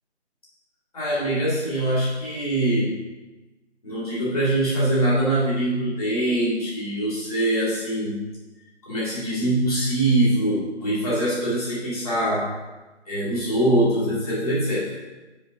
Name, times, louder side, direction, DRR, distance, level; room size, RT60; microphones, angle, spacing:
voice 1, 0.9-2.9 3.8-8.2 8.8-12.5 13.1-14.9, right 1 dB, 30° left, -8 dB, 2.5 m, -23 dB
9.2 x 6.4 x 2.7 m, 1.2 s
figure-of-eight pair, 160°, 35 cm